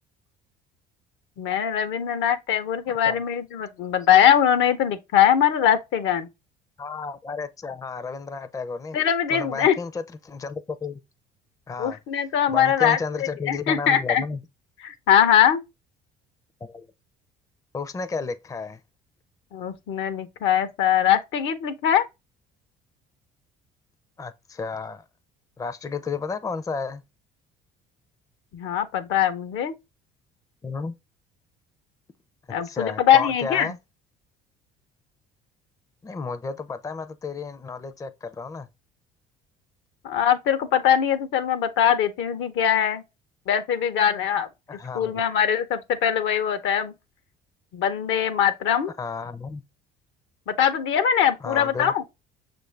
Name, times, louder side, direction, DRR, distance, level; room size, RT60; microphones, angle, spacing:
voice 1, 1.4-6.3 8.9-9.8 11.8-13.0 13.5-14.2 14.8-15.6 19.5-22.1 28.5-29.7 32.5-33.7 40.0-43.0 43.5-44.5 44.9-46.9 47.7-48.9 50.5-52.0, left 9 dB, 65° left, 0.7 m, -21 dB
voice 2, 6.8-9.0 9.3-11.0 11.7-12.0 12.5-14.4 16.6-16.9 17.7-18.8 24.2-25.0 25.6-27.0 30.6-30.9 32.6-33.8 36.0-38.7 44.7-45.2 49.0-49.6 51.4-52.0, left 4 dB, 15° left, 0.5 m, -32 dB
6.3 x 2.5 x 3.2 m
hypercardioid pair, 65°, 21 cm